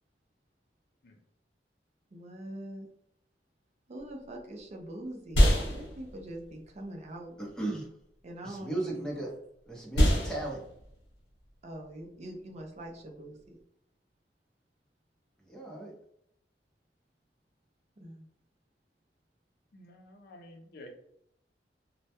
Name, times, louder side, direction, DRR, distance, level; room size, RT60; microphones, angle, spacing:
voice 1, 2.1-2.9 3.9-7.4 8.2-9.1 11.6-13.6 18.0-18.3, right 1 dB, 40° right, 1 dB, 0.4 m, -43 dB
sound 1, 4.0-13.6, equal, 75° left, 0.9 m, -30 dB
voice 2, 7.4-7.8 8.4-9.3 9.7-10.6 15.4-15.9, right 2 dB, 5° left, -2 dB, 0.6 m, -35 dB
voice 3, 19.7-20.9, left 1 dB, 60° left, 3 dB, 0.5 m, -51 dB
2.1 x 2.1 x 2.8 m, 0.73 s
head